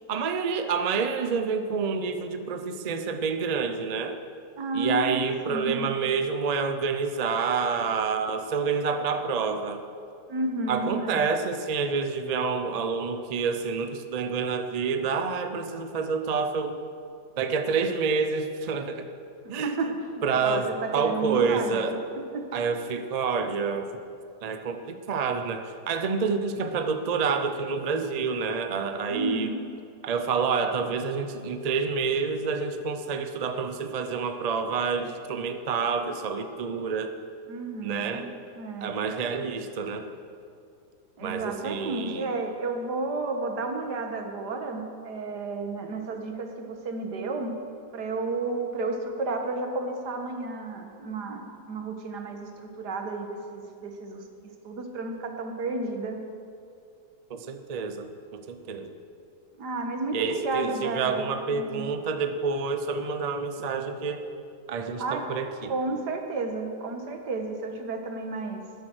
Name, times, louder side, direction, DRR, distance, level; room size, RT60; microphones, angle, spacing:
voice 1, 0.1-4.2 4.7-9.8 10.7-16.8 17.4-19.1 19.5-19.8 20.2-22.0 22.5-23.9 24.4-29.5 30.0-37.1 37.8-38.3 38.8-40.1 41.2-42.3 57.3-58.9 60.1-64.2 64.7-65.7, right 5 dB, 45° right, 8 dB, 0.5 m, -28 dB
voice 2, 4.6-5.9 10.3-11.3 19.6-21.8 22.3-22.5 29.1-29.6 37.5-38.9 41.2-47.5 47.9-54.2 54.6-56.2 59.6-61.9 65.0-65.3 65.7-68.6, right 3 dB, 75° right, 4 dB, 1.9 m, -32 dB
14.0 x 10.0 x 6.3 m, 2.4 s
omnidirectional pair, 1.8 m